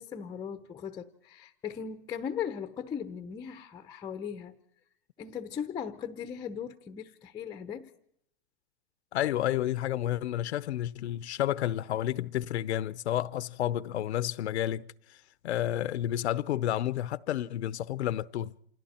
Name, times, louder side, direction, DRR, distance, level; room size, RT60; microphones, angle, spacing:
voice 1, 0.0-4.6 5.2-7.9, left 7 dB, 10° left, 0.8 m, -38 dB
voice 2, 9.1-14.9 15.4-18.5, left 12 dB, 75° left, 0.8 m, -30 dB
29.0 x 27.5 x 4.4 m
hypercardioid pair, 145°, 33 cm